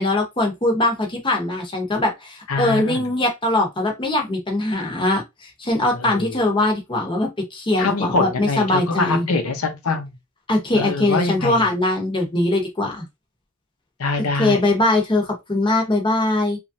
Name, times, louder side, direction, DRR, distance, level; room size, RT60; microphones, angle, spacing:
voice 1, 0.0-9.3 10.5-13.0 14.4-16.6, left 2 dB, 25° left, 0.8 m, -21 dB
voice 2, 2.5-3.0 5.9-6.4 7.8-10.1 10.7-11.7 14.0-14.6, left 3 dB, 90° left, 0.7 m, -24 dB
3.1 x 2.4 x 2.6 m
head